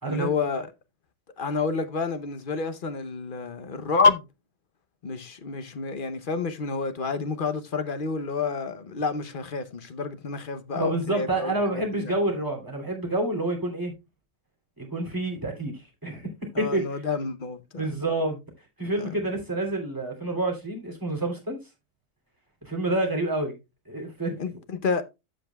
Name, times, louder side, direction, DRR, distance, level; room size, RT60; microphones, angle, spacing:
voice 1, 0.0-0.7 1.4-4.2 5.0-12.1 16.5-17.9 19.0-19.1 24.4-25.0, left 4 dB, 45° left, 0.9 m, -28 dB
voice 2, 10.7-13.9 14.8-16.2 16.5-17.0 17.8-18.4 18.8-21.6 22.6-23.5 23.9-24.4, right 2 dB, 15° right, 3.1 m, -28 dB
15.0 x 5.2 x 2.3 m
omnidirectional pair, 1.3 m